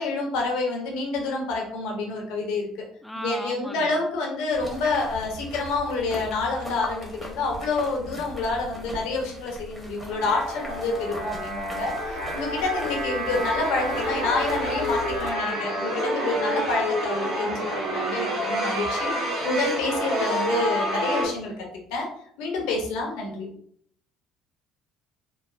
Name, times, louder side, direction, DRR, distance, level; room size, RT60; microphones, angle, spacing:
voice 1, 0.0-2.7 3.2-19.1 19.4-22.1 22.4-23.5, left 3 dB, 75° left, 0 dB, 0.6 m, -28 dB
voice 2, 3.0-3.9, equal, 5° left, 8 dB, 0.3 m, -35 dB
sound 1, 4.5-15.3, left 2 dB, 15° right, 0.9 m, -40 dB
sound 2, 10.1-21.3, equal, 80° right, 1.5 m, -28 dB
3.1 x 2.0 x 2.4 m, 0.63 s
hypercardioid pair, 65°, 0 cm